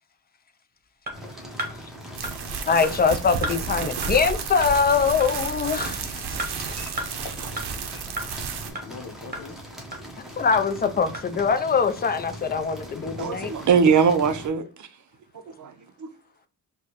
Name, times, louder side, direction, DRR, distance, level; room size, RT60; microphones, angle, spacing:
sound 1, 1.1-14.5, equal, ahead, 0.7 m, -41 dB
sound 2, 1.1-1.2 1.6-1.7 2.2-2.3 2.8-2.9 3.4-3.6 4.0-4.1 4.6-4.7 5.2-5.3 5.8-5.9 6.4-6.5 7.0-7.1 7.6-7.7 8.2-8.3 8.8-8.9 9.3-9.4 9.9-10.0 10.5-10.6 11.1-11.2, right 1 dB, 25° right, 0.9 m, -31 dB
sound 3, 2.1-8.7, right 6 dB, 90° right, 0.6 m, -32 dB
voice 1, 2.7-6.9 10.2-13.5, left 5 dB, 25° left, 0.4 m, -23 dB
voice 2, 7.0-8.0 8.8-9.6 13.4-13.6, left 5 dB, 75° left, 0.8 m, -43 dB
voice 3, 13.2-14.9 15.6-15.7 16.0-16.1, right 6 dB, 50° right, 0.5 m, -21 dB
4.7 x 2.2 x 2.8 m
wide cardioid pair, 135°, 38 cm